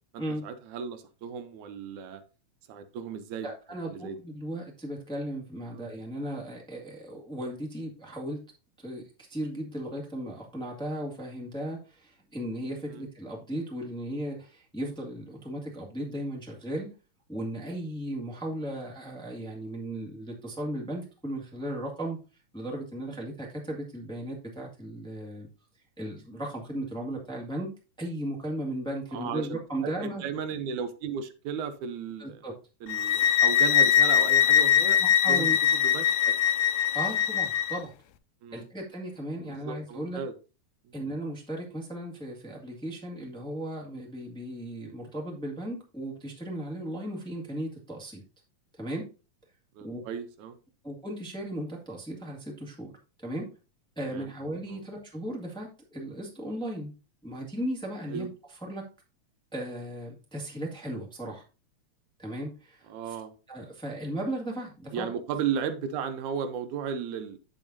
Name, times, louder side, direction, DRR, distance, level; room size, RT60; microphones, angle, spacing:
voice 1, 0.1-2.2 2.7-3.5 3.9-4.2 5.7-5.9 12.9-13.1 29.1-32.4 32.8-35.0 35.3-35.5 35.7-36.3 38.4-38.7 39.5-40.4 40.9-41.0 49.8-50.6 54.1-54.3 54.7-54.8 58.1-58.3 62.9-63.3 64.9-67.4, right 7 dB, 85° right, 2.3 m, -35 dB
voice 2, 3.4-8.4 8.8-16.9 17.3-22.2 22.5-25.5 26.0-27.7 28.0-30.2 32.2-32.5 35.0-35.6 36.9-37.9 38.5-40.2 40.9-48.2 48.8-49.1 49.8-50.0 50.8-52.9 53.2-53.5 53.9-56.9 57.2-58.3 58.6-58.9 59.5-61.4 62.2-63.1 63.5-65.1, right 1 dB, ahead, 1.4 m, -36 dB
sound 1, 32.9-37.8, left 9 dB, 75° left, 1.8 m, -22 dB
9.0 x 7.3 x 2.7 m
omnidirectional pair, 3.3 m